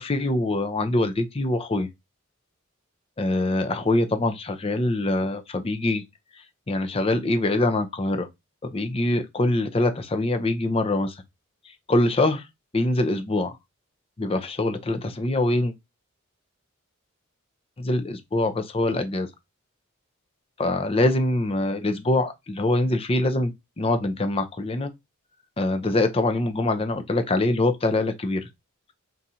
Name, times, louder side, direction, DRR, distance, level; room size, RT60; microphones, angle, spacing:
voice 1, 0.0-1.9 3.2-6.0 6.7-8.3 8.6-11.2 11.9-12.5 12.7-13.6 14.2-15.7 17.8-19.3 20.6-24.9 25.6-28.5, left 2 dB, 25° left, 0.5 m, -24 dB
3.9 x 2.4 x 4.2 m
head